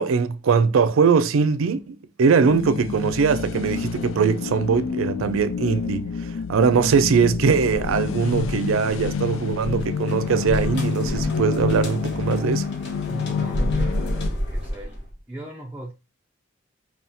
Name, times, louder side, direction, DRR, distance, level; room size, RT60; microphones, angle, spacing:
voice 1, 0.0-6.1 6.5-12.7, right 5 dB, 80° right, 0.4 m, -21 dB
sound 1, 2.4-14.3, left 6 dB, 70° left, 0.3 m, -28 dB
Insect, 7.7-10.0 10.4-11.9 13.5-15.2, equal, 20° left, 1.0 m, -29 dB
sound 2, 9.6-15.1, left 1 dB, 55° left, 1.4 m, -40 dB
voice 2, 13.1-14.2 14.5-15.0 15.3-15.9, right 1 dB, 5° right, 0.5 m, -36 dB
5.6 x 2.4 x 2.7 m
head